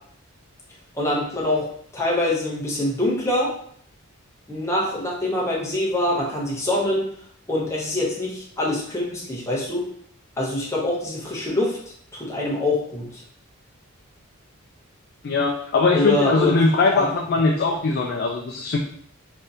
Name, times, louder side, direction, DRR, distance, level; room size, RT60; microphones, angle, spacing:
voice 1, 0.9-3.5 4.5-7.1 7.5-9.9 10.4-11.8 12.1-13.2 15.9-16.6 16.9-17.1, left 1 dB, 15° left, -4 dB, 0.6 m, -24 dB
voice 2, 15.2-18.8, left 3 dB, 50° left, 1 dB, 0.3 m, -21 dB
3.3 x 2.7 x 2.7 m, 0.62 s
head